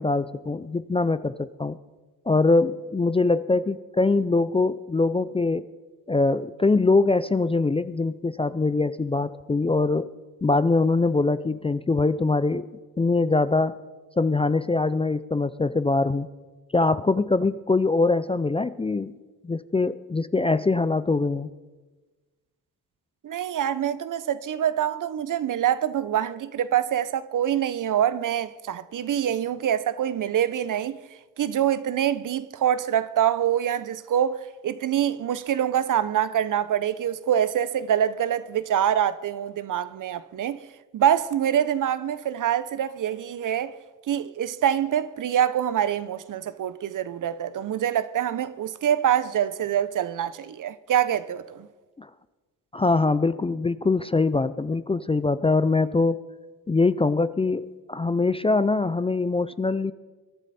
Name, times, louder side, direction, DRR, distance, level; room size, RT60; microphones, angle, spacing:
voice 1, 0.0-1.8 2.3-5.7 6.1-10.1 10.4-12.7 13.0-13.8 14.2-16.3 16.7-19.1 19.4-21.5 52.0-52.1 52.7-56.2 56.7-59.9, left 3 dB, 15° left, 0.4 m, -23 dB
voice 2, 23.2-31.0 31.4-40.6 40.9-43.7 44.1-51.7, right 10 dB, 55° right, 0.8 m, -25 dB
22.5 x 11.0 x 4.2 m
supercardioid pair, 70°, 38 cm